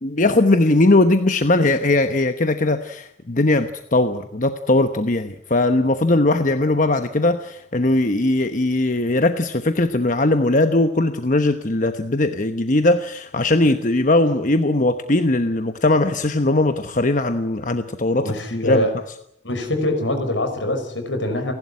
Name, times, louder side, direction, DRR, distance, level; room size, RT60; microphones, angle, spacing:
voice 1, 0.0-18.8, left 2 dB, 45° left, 8 dB, 1.1 m, -19 dB
voice 2, 18.2-19.0 19.4-21.5, left 1 dB, 80° left, 7 dB, 5.5 m, -23 dB
30.0 x 12.0 x 9.7 m, 0.74 s
head